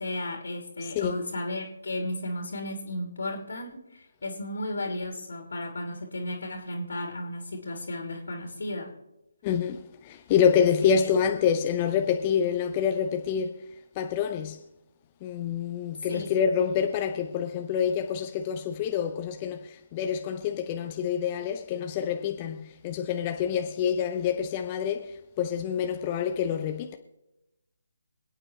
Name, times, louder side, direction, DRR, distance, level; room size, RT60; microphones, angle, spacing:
voice 1, 0.0-8.9 10.8-11.1 16.1-16.3, left 1 dB, 70° left, 3.0 m, -34 dB
voice 2, 0.8-1.2 9.4-13.6 13.9-14.6 15.2-27.0, left 8 dB, 25° left, 0.8 m, -27 dB
27.0 x 9.0 x 3.3 m
figure-of-eight pair, 145°, 0 cm